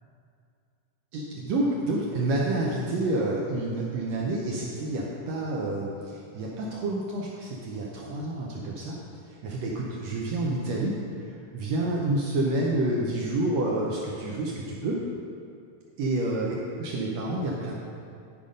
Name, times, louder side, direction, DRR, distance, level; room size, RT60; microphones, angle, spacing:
voice 1, 1.1-9.0 9.3-15.0 16.0-17.8, right 2 dB, 90° right, -3 dB, 1.5 m, -29 dB
10.5 x 5.4 x 5.1 m, 2.4 s
omnidirectional pair, 4.1 m